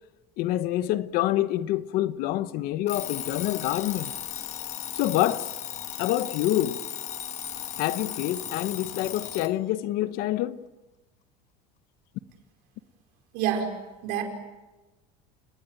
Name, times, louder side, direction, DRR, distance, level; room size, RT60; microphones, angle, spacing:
voice 1, 0.4-4.1 4.9-5.5 6.0-6.8 7.8-10.6, left 14 dB, 60° left, 1.2 m, -27 dB
Alarm, 2.9-9.6, left 10 dB, 45° left, 1.4 m, -36 dB
voice 2, 13.3-13.7 14.0-14.2, right 9 dB, 65° right, 5.1 m, -26 dB
29.5 x 19.5 x 9.2 m
cardioid pair, 140°, 17 cm